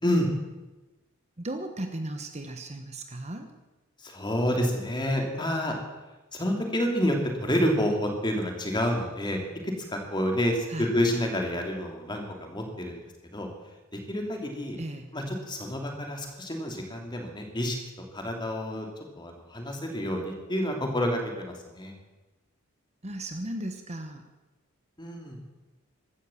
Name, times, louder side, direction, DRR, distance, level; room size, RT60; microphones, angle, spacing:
voice 1, 1.4-3.5 10.7-10.9 14.8-15.1 23.0-24.2, right 1 dB, 30° right, 6 dB, 1.2 m, -36 dB
voice 2, 4.0-5.7 6.3-13.0 13.3-13.5 13.9-14.8 15.1-17.8 18.1-18.9 19.2-21.9 25.0-25.4, equal, 20° left, 2 dB, 2.8 m, -29 dB
15.5 x 13.0 x 7.2 m, 1.1 s
head